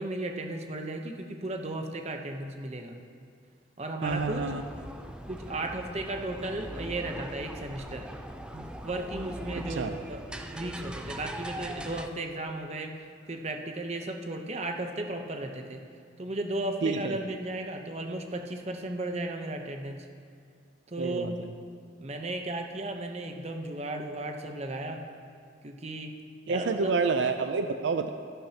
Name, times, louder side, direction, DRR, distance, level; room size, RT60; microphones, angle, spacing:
voice 1, 0.0-3.0 3.8-4.4 5.3-8.1 8.5-10.2 10.5-12.9 13.3-15.8 16.2-20.0 20.9-21.3 22.0-25.0 25.6-26.1 26.5-26.9, right 2 dB, 35° right, 4 dB, 0.8 m, -35 dB
voice 2, 4.0-4.6 9.5-10.0 16.8-17.2 21.0-21.5 26.5-28.1, right 4 dB, 75° right, 8 dB, 0.4 m, -29 dB
sound 1, 4.1-12.1, equal, 5° right, 0.4 m, -41 dB
13.5 x 11.5 x 2.9 m, 2.4 s
head